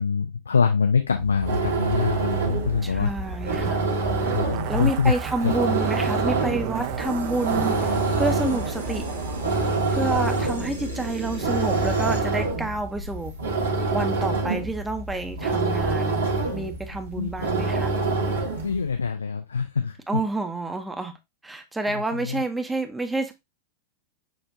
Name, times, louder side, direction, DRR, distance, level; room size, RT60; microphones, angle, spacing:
voice 1, 0.0-3.1 4.3-5.2 5.4-5.5 16.3-16.4 17.2-17.3 18.6-19.9 22.3-22.4, left 5 dB, 75° left, 0.4 m, -24 dB
sound 1, 1.2-18.8, right 3 dB, 70° right, 1.2 m, -26 dB
Zipper (clothing), 2.2-9.9 10.1-10.2, right 10 dB, 45° right, 0.5 m, -35 dB
voice 2, 2.8-3.8 4.7-9.0 9.9-13.3 13.9-16.3 16.5-17.9 20.1-21.2 21.4-23.3, right 3 dB, 5° right, 0.7 m, -29 dB
sound 2, 7.0-12.2, right 1 dB, 90° right, 1.1 m, -33 dB
6.3 x 2.5 x 2.5 m
figure-of-eight pair, 90°, 0 cm